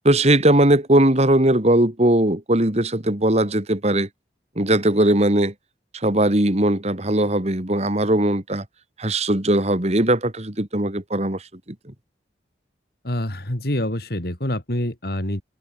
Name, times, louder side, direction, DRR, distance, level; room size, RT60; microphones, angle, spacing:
voice 1, 0.0-4.1 4.6-5.5 5.9-8.6 9.0-11.4, right 1 dB, 35° right, 2.3 m, -19 dB
voice 2, 13.0-15.4, left 1 dB, 60° left, 3.1 m, -26 dB
head